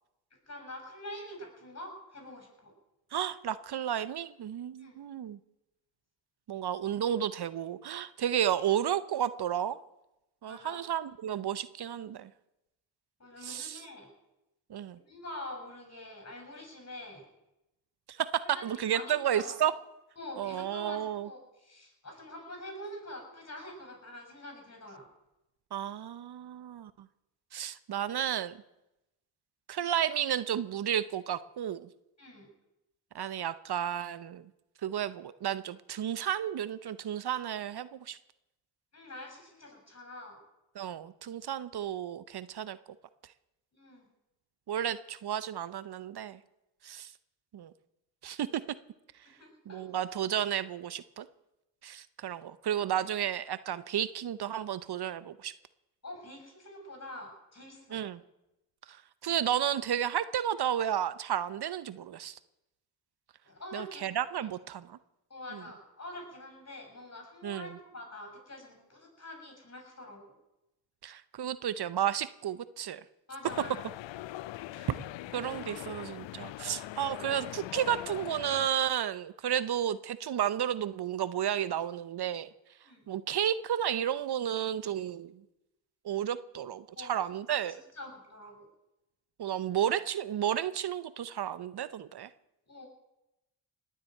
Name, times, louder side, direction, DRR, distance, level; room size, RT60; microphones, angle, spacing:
voice 1, 0.5-2.7 4.8-5.0 10.5-10.8 13.2-14.1 15.0-17.3 18.5-18.6 18.9-19.6 20.2-25.1 32.2-32.5 38.9-40.4 43.7-44.1 49.2-49.8 56.0-58.0 63.5-64.1 65.3-70.3 73.3-73.7 82.8-83.1 87.0-87.2 87.5-88.6 92.7-92.9, left 1 dB, 35° left, 3 dB, 7.3 m, -45 dB
voice 2, 3.1-5.4 6.5-9.8 10.4-12.3 13.4-13.8 14.7-15.0 18.1-19.7 20.4-21.3 25.7-26.9 27.5-28.6 29.7-31.9 33.1-34.4 34.8-38.2 40.7-42.8 44.7-46.4 46.8-47.1 47.5-47.7 48.2-48.6 49.7-51.3 51.8-55.5 57.9-58.2 58.9-59.0 59.2-62.4 63.7-65.0 67.4-67.7 71.0-73.0 74.8-74.9 75.3-82.5 83.1-85.3 86.0-87.8 89.4-92.3, right 10 dB, 60° right, 16 dB, 0.8 m, -32 dB
sound 1, 73.4-78.7, left 15 dB, 80° left, 0.6 m, -42 dB
19.5 x 7.6 x 9.1 m, 0.92 s
cardioid pair, 60°, 44 cm